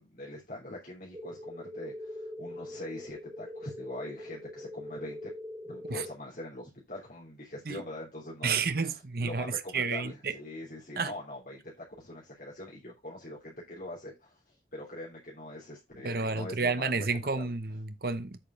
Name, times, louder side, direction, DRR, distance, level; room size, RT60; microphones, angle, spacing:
voice 1, 0.0-5.3 5.6-17.1 17.4-17.5, left 1 dB, 50° left, 3.3 m, -43 dB
sound 1, 1.1-6.1, left 1 dB, 20° right, 3.2 m, -42 dB
voice 2, 8.4-10.3 11.0-11.1 16.0-18.4, right 4 dB, 55° right, 0.9 m, -31 dB
8.9 x 5.3 x 3.9 m
head